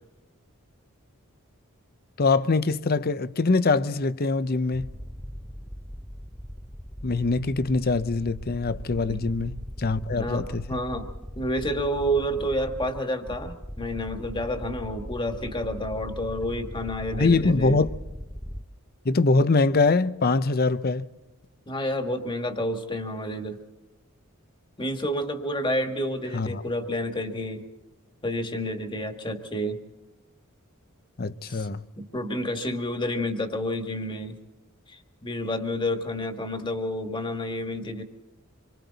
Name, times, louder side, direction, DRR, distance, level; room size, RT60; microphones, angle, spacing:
voice 1, 2.2-4.9 7.0-10.7 17.1-17.9 19.0-21.1 26.3-26.6 31.2-31.8, left 3 dB, 45° left, 0.7 m, -23 dB
sound 1, 4.7-18.6, equal, 5° left, 0.6 m, -39 dB
voice 2, 10.1-11.1 11.4-17.8 21.7-23.6 24.8-27.7 28.2-29.8 31.4-31.7 32.0-34.4 34.9-38.0, equal, 20° left, 1.8 m, -29 dB
26.5 x 24.0 x 4.1 m
head